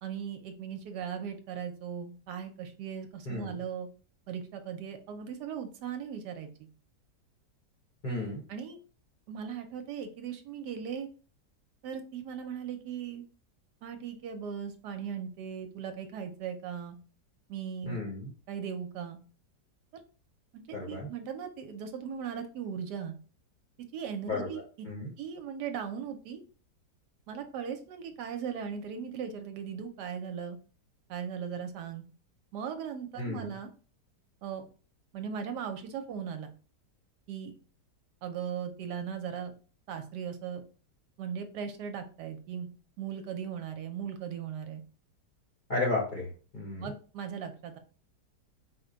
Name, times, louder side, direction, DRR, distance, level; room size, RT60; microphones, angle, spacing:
voice 1, 0.0-3.9 4.3-6.7 8.5-8.8 9.3-11.1 11.8-13.2 13.8-17.0 17.5-18.0 18.5-19.2 20.5-23.1 23.9-24.9 25.2-26.4 27.3-30.6 31.1-32.0 32.5-33.7 34.4-34.7 35.1-36.5 37.3-37.5 38.2-39.5 39.9-40.6 41.2-42.7 43.0-44.8 46.8-47.8, right 7 dB, 75° right, 7 dB, 1.1 m, -38 dB
voice 2, 3.3-3.6 8.0-8.4 17.9-18.3 20.7-21.1 24.3-24.5 24.8-25.1 33.2-33.5 45.7-46.9, left 2 dB, 40° left, -2 dB, 0.7 m, -33 dB
4.6 x 2.1 x 3.8 m, 0.38 s
omnidirectional pair, 1.9 m